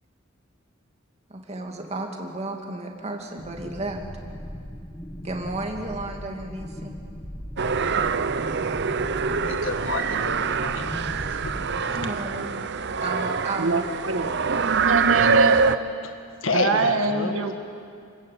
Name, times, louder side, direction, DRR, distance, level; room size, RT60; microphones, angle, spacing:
voice 1, 1.3-4.0 5.2-6.9 12.0-13.7, right 2 dB, 30° right, 1 dB, 2.6 m, -33 dB
sound 1, 3.4-11.8, equal, 20° left, 1.7 m, -38 dB
sound 2, 7.6-15.8, right 5 dB, 55° right, 0.7 m, -24 dB
voice 2, 9.1-10.9 11.2-11.5 11.8-12.0 16.0-17.6, left 3 dB, 70° left, 5 dB, 1.6 m, -31 dB
voice 3, 13.6-14.3 14.9-15.6 16.5-17.5, right 3 dB, 80° right, 5 dB, 2.0 m, -24 dB
29.0 x 14.0 x 8.8 m, 2.4 s
head